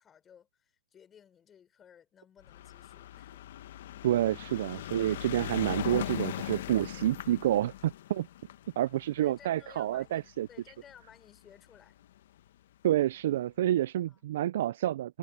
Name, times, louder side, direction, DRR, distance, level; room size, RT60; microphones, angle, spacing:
voice 1, 0.0-3.5 9.2-12.0 14.1-14.2, left 8 dB, 20° left, 4.9 m, -57 dB
sound 1, 2.4-10.9 11.7-11.8 12.0-12.1 12.4-12.5, left 13 dB, 65° left, 1.4 m, -40 dB
voice 2, 4.0-8.3 8.8-10.5 12.8-15.2, right 12 dB, 60° right, 0.4 m, -29 dB
hypercardioid pair, 130°, 0 cm